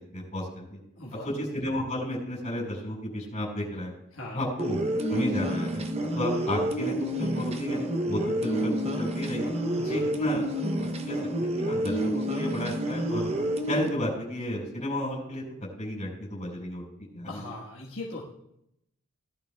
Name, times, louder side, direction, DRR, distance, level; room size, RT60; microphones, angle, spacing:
voice 1, 0.1-0.8 1.2-3.9 4.3-4.8 5.1-5.8 6.1-9.5 9.9-10.5 10.8-13.3 13.7-15.4 15.8-16.8 17.1-17.4, left 1 dB, 30° left, -3 dB, 5.0 m, -32 dB
voice 2, 1.0-1.3 4.1-4.4 9.7-10.1 17.2-18.2, left 2 dB, 65° left, -4 dB, 1.4 m, -39 dB
sound 1, 4.6-13.9, right 1 dB, 30° right, 0.7 m, -29 dB
18.0 x 11.0 x 2.3 m, 0.80 s
head